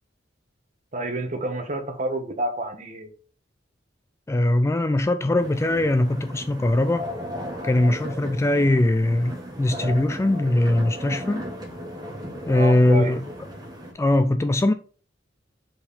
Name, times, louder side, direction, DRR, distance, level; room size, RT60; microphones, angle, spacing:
voice 1, 0.9-3.1 12.5-13.2, right 1 dB, 40° right, 1.3 m, -29 dB
voice 2, 4.3-7.1 7.6-11.5 12.5-13.2 14.0-14.7, left 1 dB, 15° left, 0.3 m, -21 dB
sound 1, 5.4-13.9, equal, 20° right, 1.8 m, -36 dB
5.4 x 4.5 x 4.1 m
head